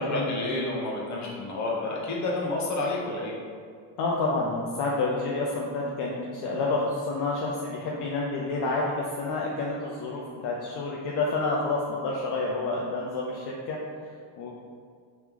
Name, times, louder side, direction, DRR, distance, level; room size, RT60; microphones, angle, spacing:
voice 1, 0.0-3.3, left 2 dB, 40° left, -3 dB, 1.0 m, -30 dB
voice 2, 4.0-14.5, left 3 dB, 65° left, -3 dB, 0.6 m, -29 dB
3.2 x 3.0 x 3.6 m, 2.1 s
cardioid pair, 110°, 44 cm